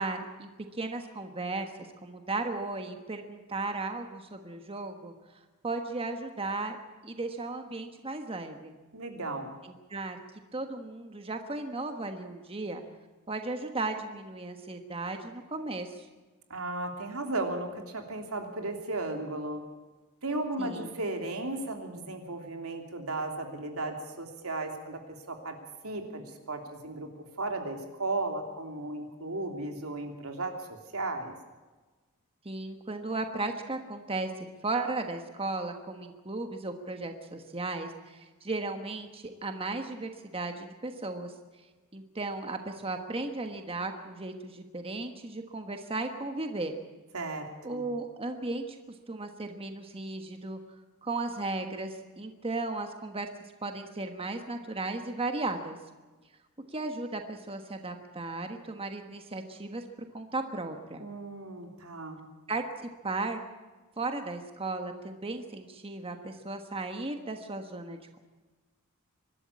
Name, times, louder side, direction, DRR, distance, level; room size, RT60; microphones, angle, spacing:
voice 1, 0.0-1.7 2.0-5.1 5.6-6.8 7.0-8.7 9.6-10.2 10.5-12.8 13.3-16.1 20.6-21.0 32.4-41.3 41.9-46.8 47.6-48.8 49.1-50.6 51.0-53.3 53.6-55.8 56.7-59.8 60.1-61.1 62.5-63.4 64.0-68.2, right 2 dB, 25° right, 5 dB, 1.4 m, -35 dB
voice 2, 8.9-9.5 16.5-19.6 20.2-25.0 25.3-25.6 25.8-27.1 27.4-31.3 47.1-47.9 61.0-62.2, right 2 dB, 85° right, 3 dB, 3.1 m, -35 dB
24.5 x 12.5 x 8.5 m, 1.3 s
head